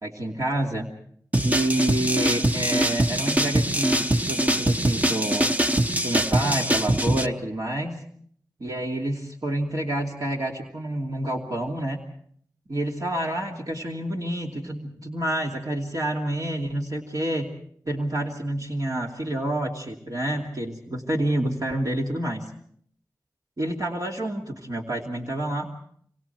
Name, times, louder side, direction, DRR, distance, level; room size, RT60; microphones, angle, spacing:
voice 1, 0.0-0.9 1.4-5.5 6.0-8.0 8.6-12.0 12.7-17.5 17.9-22.4 23.6-25.7, right 1 dB, 55° right, -1 dB, 2.8 m, -28 dB
sound 1, 1.3-7.3, right 1 dB, 20° right, 1.1 m, -23 dB
26.5 x 26.0 x 4.6 m, 0.63 s
wide cardioid pair, 50°, 7 cm